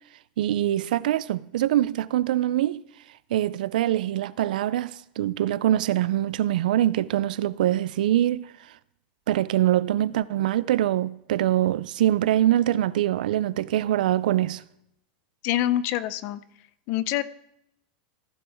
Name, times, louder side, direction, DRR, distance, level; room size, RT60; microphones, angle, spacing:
voice 1, 0.4-2.8 3.3-8.5 9.3-14.6, right 13 dB, 85° right, 0.4 m, -24 dB
voice 2, 15.4-16.4 16.9-17.2, left 13 dB, 45° left, 0.5 m, -25 dB
15.0 x 7.0 x 3.5 m
supercardioid pair, 150°, 4 cm